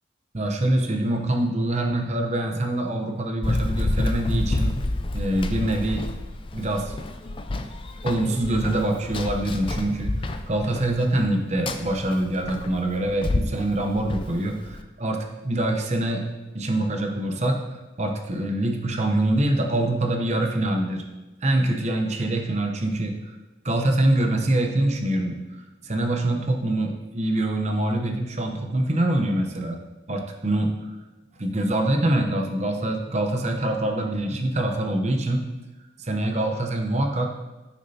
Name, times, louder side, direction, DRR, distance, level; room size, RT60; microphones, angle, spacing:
voice 1, 0.3-4.8 5.1-6.0 6.5-7.0 8.0-16.3 16.5-17.7 18.0-21.0 21.4-23.3 23.6-25.4 25.8-29.8 30.1-30.9 31.4-35.4 36.0-37.3, right 1 dB, 35° right, 3 dB, 0.8 m, -24 dB
Run, 3.4-14.8, left 2 dB, 25° left, 0.4 m, -29 dB
9.6 x 6.5 x 2.8 m, 1.1 s
head